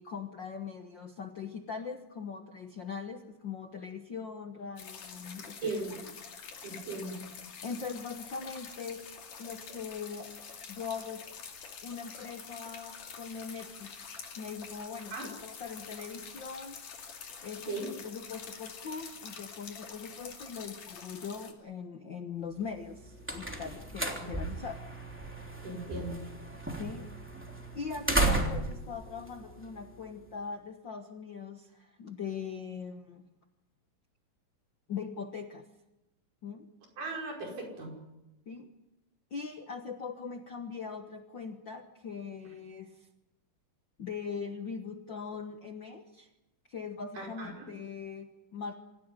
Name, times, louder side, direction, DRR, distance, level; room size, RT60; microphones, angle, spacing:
voice 1, 0.0-5.6 7.6-9.0 9.4-10.4 10.7-11.3 11.8-13.9 14.4-16.8 17.4-24.9 26.7-27.1 27.7-33.2 34.9-35.7 36.4-36.7 38.5-38.7 39.3-43.1 44.0-46.3 46.7-48.8, left 5 dB, 55° left, 6 dB, 1.3 m, -41 dB
sound 1, 4.8-21.5, left 6 dB, 70° left, 4.2 m, -46 dB
voice 2, 5.6-6.0 6.6-7.2 15.1-15.3 17.7-17.9 24.2-24.4 25.6-26.2 37.0-37.9 47.2-47.7, right 3 dB, 70° right, 0 dB, 6.9 m, -38 dB
sound 2, 22.8-30.2, right 2 dB, 5° right, 2.8 m, -34 dB
26.5 x 16.0 x 9.9 m, 0.99 s
omnidirectional pair, 3.8 m